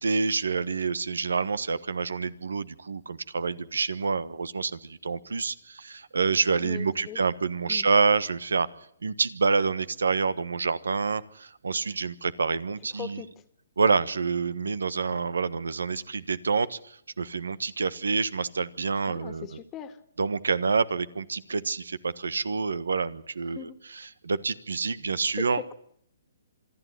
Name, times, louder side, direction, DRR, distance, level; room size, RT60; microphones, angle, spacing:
voice 1, 0.0-8.7 9.0-13.2 13.8-19.5 20.2-23.7 24.2-25.6, right 4 dB, 90° right, 16 dB, 1.3 m, -27 dB
voice 2, 6.6-7.2 7.7-7.9 12.9-13.3 19.1-20.0 23.5-23.8 25.3-25.7, left 10 dB, 20° left, 11 dB, 1.9 m, -40 dB
26.5 x 10.5 x 9.9 m, 0.68 s
hypercardioid pair, 140°, 0 cm